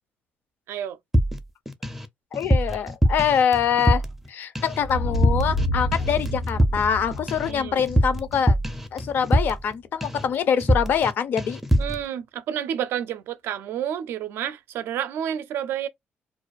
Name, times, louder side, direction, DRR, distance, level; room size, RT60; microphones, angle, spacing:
voice 1, 0.7-1.0 7.5-7.8 11.8-15.9, right 10 dB, 75° right, 0.4 m, -30 dB
sound 1, 1.1-2.1 2.3-4.3 4.6-4.9 5.1-5.7 5.9-9.7 10.0-10.3 10.6-11.1 11.4-12.0, equal, 5° right, 0.4 m, -23 dB
voice 2, 2.3-4.0 4.3-8.6 8.9-11.6, left 8 dB, 55° left, 0.4 m, -24 dB
sound 2, 4.8-9.4, left 1 dB, 80° left, 0.9 m, -28 dB
2.4 x 2.3 x 2.3 m
cardioid pair, 150°, 4 cm